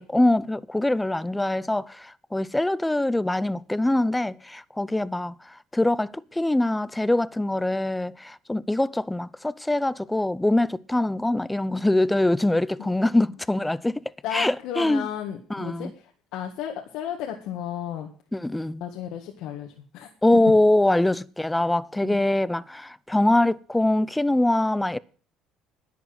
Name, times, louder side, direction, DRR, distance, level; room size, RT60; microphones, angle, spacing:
voice 1, 0.0-14.0 14.3-15.1 15.5-15.9 18.3-18.9 20.2-25.0, left 1 dB, 10° left, 0.6 m, -23 dB
voice 2, 14.2-18.1 18.8-20.4 22.0-22.2, left 10 dB, 75° left, 1.7 m, -34 dB
11.0 x 8.2 x 7.6 m
supercardioid pair, 95°, 0 cm